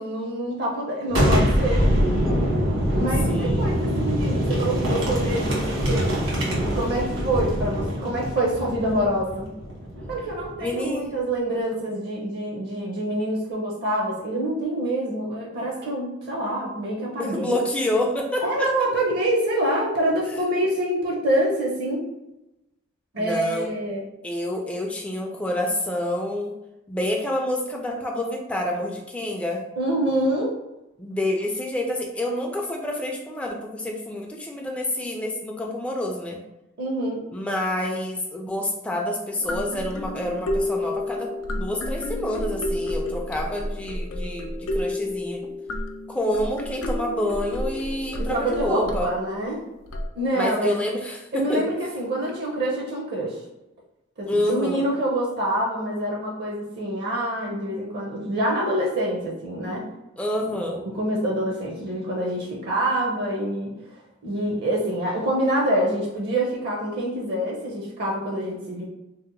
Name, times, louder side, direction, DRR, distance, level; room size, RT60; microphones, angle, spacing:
voice 1, 0.0-1.9 2.9-6.1 6.7-9.5 10.1-17.6 18.4-22.1 23.1-24.0 29.8-30.5 36.8-37.2 48.2-49.6 50.1-50.7 51.3-53.4 54.2-59.8 60.5-63.7 64.2-68.8, right 1 dB, 50° right, -2 dB, 0.6 m, -26 dB
Boom, 1.1-10.7, equal, 75° right, 1.3 m, -24 dB
voice 2, 3.3-3.7 10.6-11.1 17.2-18.7 20.3-20.5 23.2-23.7 24.2-26.5 26.9-29.6 31.0-36.4 37.3-41.3 41.6-45.4 46.1-49.1 50.3-51.7 54.3-54.9 60.2-60.9, left 1 dB, 5° left, 0 dB, 0.3 m, -28 dB
sound 1, 39.4-49.5 49.9-50.1, left 1 dB, 90° left, 0.4 m, -30 dB
2.8 x 2.1 x 3.8 m, 0.93 s
head